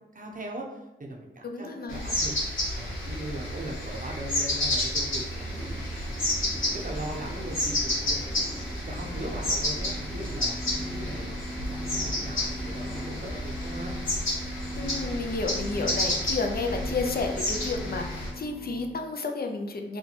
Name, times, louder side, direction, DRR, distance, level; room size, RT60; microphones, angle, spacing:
voice 1, 0.1-2.3 2.7-5.7 6.1-10.5 10.9-13.9, right 1 dB, 40° right, 0 dB, 0.7 m, -39 dB
voice 2, 1.4-2.0 14.8-20.0, left 3 dB, 50° left, 4 dB, 0.5 m, -31 dB
sound 1, 1.9-18.3, left 1 dB, 80° left, 1.1 m, -31 dB
sound 2, 5.4-15.5, right 1 dB, 10° right, 0.7 m, -43 dB
sound 3, 9.4-19.0, left 1 dB, 20° left, 1.2 m, -39 dB
2.8 x 2.2 x 4.0 m, 0.91 s
cardioid pair, 60°, 20 cm